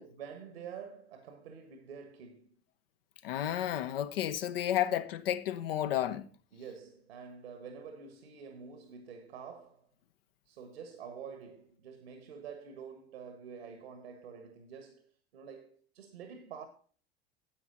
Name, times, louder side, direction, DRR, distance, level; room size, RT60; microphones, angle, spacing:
voice 1, 0.0-2.6 6.5-9.9 10.5-16.7, right 6 dB, 70° right, 1.4 m, -48 dB
voice 2, 3.2-6.3, left 11 dB, 65° left, 1.0 m, -32 dB
10.5 x 8.1 x 3.9 m
figure-of-eight pair, 80°, 32 cm